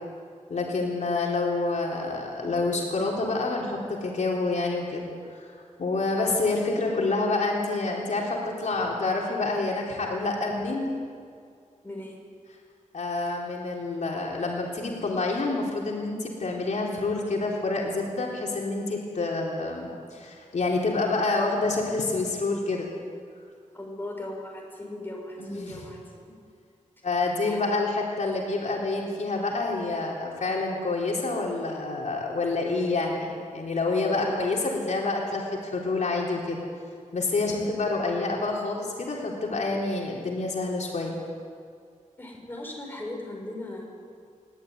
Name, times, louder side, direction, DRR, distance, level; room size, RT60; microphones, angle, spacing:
voice 1, 0.5-5.5 5.8-10.9 12.9-22.9 25.4-25.8 27.0-36.6 37.1-41.2, left 3 dB, 65° left, -2 dB, 4.0 m, -28 dB
voice 2, 11.8-12.2 23.7-26.4 27.4-28.1 34.2-34.4 42.2-43.9, left 1 dB, 15° left, -1 dB, 6.0 m, -38 dB
23.0 x 19.0 x 9.6 m, 2.2 s
wide cardioid pair, 150°, 13 cm